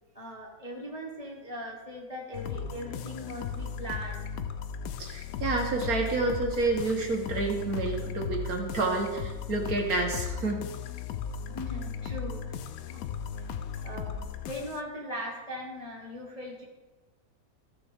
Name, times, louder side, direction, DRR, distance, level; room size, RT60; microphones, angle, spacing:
voice 1, 0.1-4.2 11.5-12.6 12.9-13.0 13.8-14.1 14.4-16.6, equal, 25° left, -3 dB, 1.0 m, -39 dB
sound 1, 2.3-14.8, left 6 dB, 85° left, 0.8 m, -36 dB
voice 2, 5.0-10.6, right 3 dB, 55° right, 2 dB, 1.6 m, -29 dB
14.5 x 6.9 x 3.5 m, 1.2 s
omnidirectional pair, 2.1 m